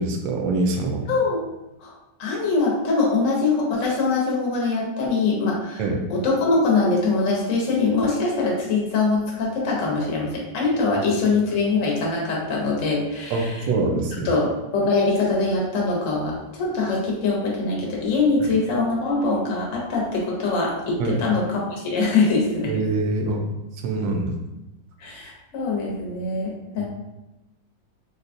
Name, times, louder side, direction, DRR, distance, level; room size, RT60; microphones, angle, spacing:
voice 1, 0.0-1.1 5.8-6.0 13.3-14.3 18.4-18.5 21.0-21.2 22.7-23.4 23.8-24.4 26.8-26.9, right 3 dB, 80° right, 2 dB, 1.3 m, -24 dB
voice 2, 1.1-1.4 1.8-1.9 2.2-5.8 6.1-13.5 14.2-22.7 25.0-26.9, left 3 dB, 55° left, -3 dB, 1.0 m, -23 dB
4.0 x 2.3 x 2.5 m, 0.98 s
omnidirectional pair, 2.0 m